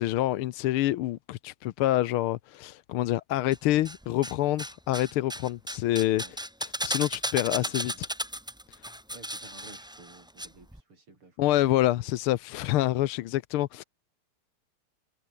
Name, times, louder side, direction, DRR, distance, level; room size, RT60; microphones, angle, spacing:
voice 1, 0.0-6.2 6.8-8.1 11.4-13.8, left 14 dB, 85° left, 1.6 m, -27 dB
sound 1, 3.5-4.3 4.6-10.5 10.7-10.8, equal, ahead, 1.2 m, -35 dB
voice 2, 7.5-8.0 9.1-11.6, right 3 dB, 80° right, 6.8 m, -53 dB
omnidirectional pair, 2.4 m